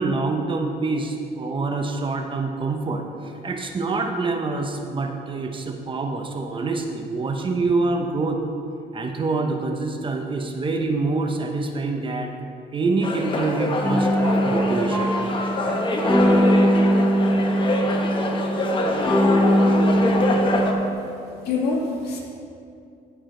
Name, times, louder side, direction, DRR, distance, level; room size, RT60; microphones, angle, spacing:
voice 1, 0.0-8.4 8.9-12.3 12.7-15.1, right 3 dB, 30° right, 3 dB, 0.9 m, -26 dB
sound 1, 13.0-20.7, left 2 dB, 30° left, 1.0 m, -25 dB
sound 2, 13.8-20.9, equal, 10° left, 1.0 m, -21 dB
voice 2, 21.4-22.2, left 4 dB, 70° left, -3 dB, 2.0 m, -26 dB
14.0 x 4.9 x 3.8 m, 2.5 s
cardioid pair, 110°, 17 cm